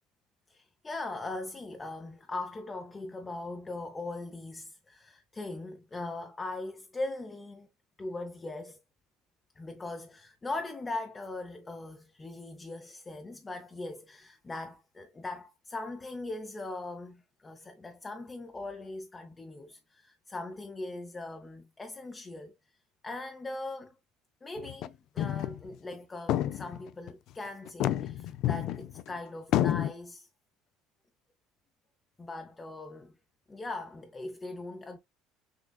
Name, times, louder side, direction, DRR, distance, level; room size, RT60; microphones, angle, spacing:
voice 1, 0.5-7.7 8.0-8.8 9.6-22.5 23.0-24.0 24.4-30.3 32.2-33.2 33.5-35.0, left 2 dB, 20° left, 0.6 m, -40 dB
sound 1, 24.6-24.9 25.2-25.6 25.9-26.0 26.3-27.1 27.7-29.1 29.5-29.9, left 12 dB, 65° left, 0.4 m, -29 dB
6.3 x 2.3 x 2.3 m
supercardioid pair, 105°, 0 cm